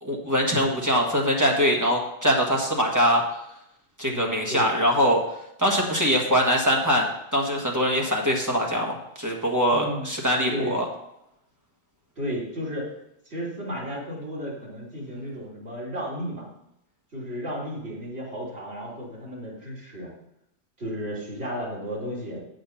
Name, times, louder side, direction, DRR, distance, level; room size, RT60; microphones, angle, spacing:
voice 1, 0.0-3.2 4.0-5.2 5.6-10.8, equal, 15° right, -1 dB, 1.5 m, -23 dB
voice 2, 4.0-4.7 9.7-10.1 10.5-10.8 12.2-12.9 13.2-16.5 17.1-20.1 20.8-22.4, equal, 70° right, -5 dB, 3.2 m, -33 dB
8.5 x 6.5 x 5.7 m, 0.82 s
omnidirectional pair, 1.1 m